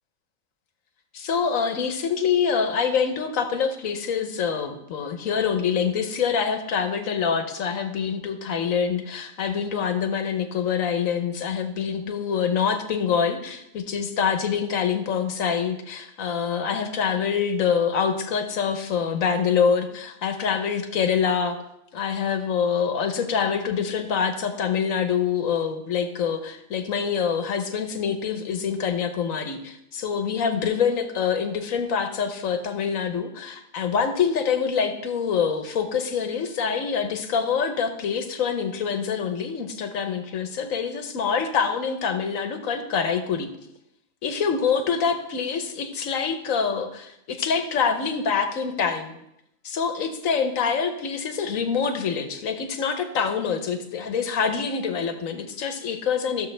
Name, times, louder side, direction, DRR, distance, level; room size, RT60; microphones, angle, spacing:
voice 1, 1.1-21.6 21.9-43.5 44.2-49.2 49.6-56.5, left 6 dB, 70° left, 7 dB, 1.3 m, -25 dB
14.0 x 6.7 x 3.3 m, 0.82 s
omnidirectional pair, 1.5 m